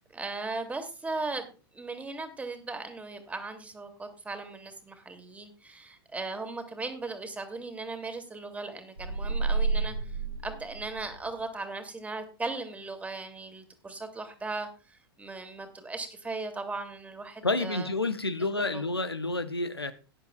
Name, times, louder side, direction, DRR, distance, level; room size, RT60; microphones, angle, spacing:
voice 1, 0.1-1.5 1.7-10.2 10.4-17.9 18.6-18.8, right 3 dB, 10° right, 2.2 m, -38 dB
sound 1, 9.0-11.4, right 4 dB, 85° right, 3.4 m, -30 dB
voice 2, 17.4-19.9, left 3 dB, 85° left, 0.9 m, -29 dB
18.0 x 10.5 x 2.3 m
figure-of-eight pair, 90°, 13 cm